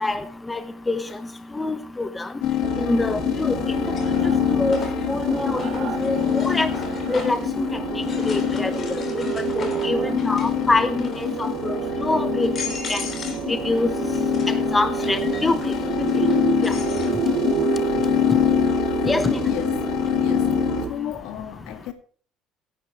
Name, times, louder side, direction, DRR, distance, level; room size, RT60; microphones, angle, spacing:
sound 1, 1.1-1.2 2.9-3.3 3.7-7.5 8.0-10.6 10.9-11.4 12.0-12.1 12.4-13.5 13.8-17.1, left 5 dB, 35° left, 3.0 m, -38 dB
voice 1, 1.6-2.1 2.8-3.5 4.6-4.8 5.1-6.2 6.4-6.7 7.1-7.7 8.3-8.7 9.1-9.2 9.6-11.1 11.4-11.7 12.0-12.5 12.9-13.0 13.5-13.9 14.7-15.7 16.6-16.7 19.1-19.4, left 2 dB, 10° left, 1.0 m, -24 dB
sound 2, 2.4-20.8, left 12 dB, 60° left, 1.9 m, -25 dB
sound 3, 2.6-20.9, right 9 dB, 55° right, 1.3 m, -29 dB
voice 2, 19.4-19.8 20.2-20.5 20.9-21.9, left 10 dB, 75° left, 2.0 m, -34 dB
16.5 x 11.0 x 3.1 m
cardioid pair, 150°, 0 cm